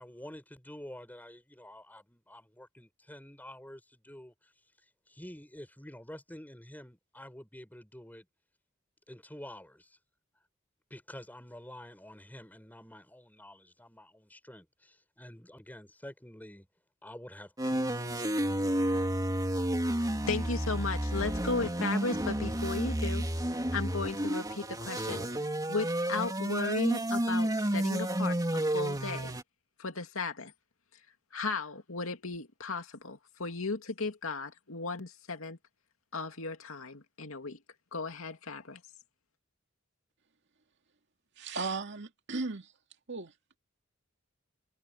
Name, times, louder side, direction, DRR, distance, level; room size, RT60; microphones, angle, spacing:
voice 1, 0.0-4.5 5.1-8.3 9.1-10.0 10.9-16.7 17.0-18.1, left 1 dB, 10° left, 7.3 m, -49 dB
sound 1, 17.6-29.4, right 1 dB, 20° right, 3.2 m, -31 dB
voice 2, 20.3-23.3 23.7-25.2 25.7-29.3 29.8-30.5 31.3-35.6 36.1-37.6 37.9-38.8, left 3 dB, 80° left, 2.5 m, -35 dB
voice 3, 41.4-42.7 43.1-43.3, right 3 dB, 60° right, 2.3 m, -36 dB
head